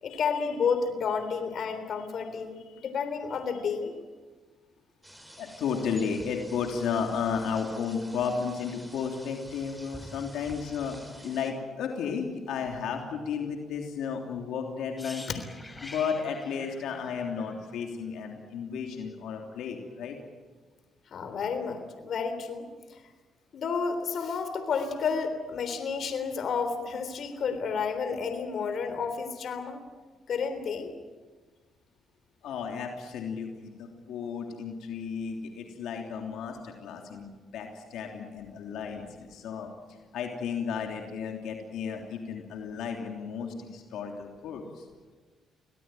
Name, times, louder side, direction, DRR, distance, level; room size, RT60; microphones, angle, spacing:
voice 1, 0.0-3.9 21.1-23.0 23.5-29.8 30.3-30.9, left 5 dB, 60° left, 9 dB, 3.5 m, -31 dB
sound 1, 5.0-11.5, equal, 5° right, 4.5 m, -49 dB
voice 2, 5.4-11.0 11.2-15.2 15.8-20.1 32.4-37.3 37.5-39.7 40.1-44.8, left 6 dB, 80° left, 2 dB, 3.2 m, -33 dB
sound 2, 15.0-18.8 19.1-19.3, left 2 dB, 20° left, 3.9 m, -47 dB
25.0 x 18.0 x 9.2 m, 1.4 s
cardioid pair, 90°, 0 cm